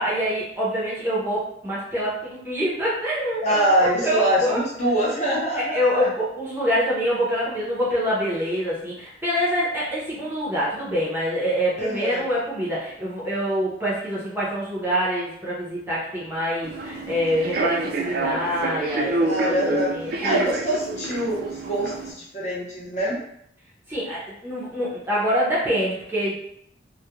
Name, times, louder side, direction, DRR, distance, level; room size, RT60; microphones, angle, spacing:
voice 1, 0.0-4.6 5.7-20.4 23.9-26.4, equal, 10° right, -7 dB, 0.6 m, -25 dB
voice 2, 3.4-6.1 11.8-12.2 18.9-19.9 20.2-23.2, right 1 dB, 40° left, -6 dB, 0.8 m, -24 dB
Human voice / Subway metro underground, 16.6-22.1, right 2 dB, 55° right, 0.3 m, -27 dB
2.3 x 2.1 x 2.9 m, 0.72 s
head